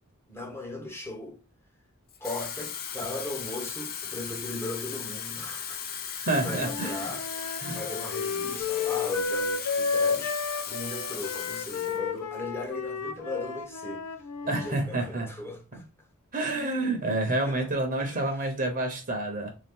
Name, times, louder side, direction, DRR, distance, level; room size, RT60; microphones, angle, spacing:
voice 1, 0.3-1.4 2.2-5.8 6.4-7.2 7.7-10.4 10.7-14.0 14.4-15.9 17.4-17.7 18.0-18.3, left 2 dB, 10° left, 1.0 m, -38 dB
Water tap faucet / Fill (with liquid), 2.1-12.0 12.4-12.6, left 8 dB, 45° left, 0.6 m, -37 dB
voice 2, 6.2-7.1 7.6-7.8 14.5-15.3 15.7-15.8 16.3-19.5, right 2 dB, 40° right, 1.0 m, -29 dB
Wind instrument woodwind instrument, 6.6-14.7, left 5 dB, 85° left, 0.6 m, -32 dB
3.5 x 2.8 x 3.7 m
head